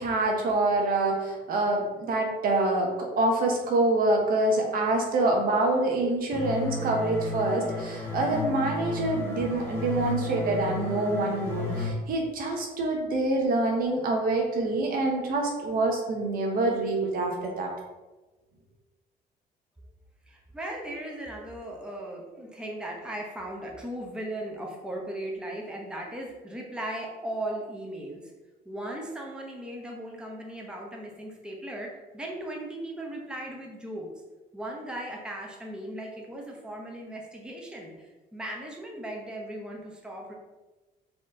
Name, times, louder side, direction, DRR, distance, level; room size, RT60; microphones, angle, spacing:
voice 1, 0.0-17.7, right 2 dB, 60° right, 1 dB, 1.0 m, -26 dB
sound 1, 6.3-11.9, left 3 dB, 10° left, 1.1 m, -33 dB
voice 2, 20.3-28.2 28.6-34.1 34.5-40.3, right 1 dB, 5° right, -1 dB, 0.8 m, -37 dB
4.4 x 2.9 x 3.7 m, 1.1 s
cardioid pair, 110°, 17 cm